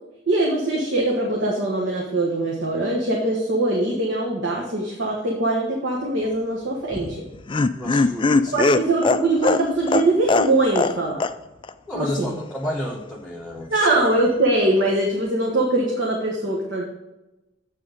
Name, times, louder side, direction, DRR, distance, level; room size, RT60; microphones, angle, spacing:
voice 1, 0.3-7.2 8.5-11.2 11.9-12.3 13.7-16.8, right 2 dB, 65° right, -2 dB, 1.4 m, -22 dB
Laughter, 6.9-11.0 11.2-11.3 11.6-11.7, left 3 dB, 25° left, 0.3 m, -20 dB
voice 2, 7.8-8.6 11.9-13.9, left 1 dB, 5° left, -2 dB, 0.7 m, -31 dB
7.6 x 6.3 x 5.0 m, 1.0 s
head